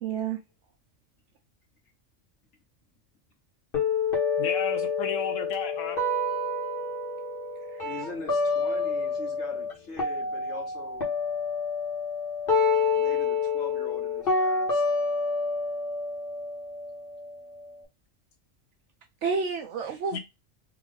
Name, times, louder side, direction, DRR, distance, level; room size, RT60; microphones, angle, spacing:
voice 1, 0.0-0.4 7.7-7.9 19.2-20.2, right 5 dB, 75° right, 0.9 m, -30 dB
sound 1, 3.7-9.7 10.0-17.8, left 4 dB, 50° left, 1.3 m, -28 dB
voice 2, 4.4-6.0 20.1-20.2, left 7 dB, 90° left, 1.1 m, -33 dB
voice 3, 7.8-11.1 12.9-14.8, left 3 dB, 70° left, 1.5 m, -42 dB
3.5 x 2.4 x 3.8 m
omnidirectional pair, 1.3 m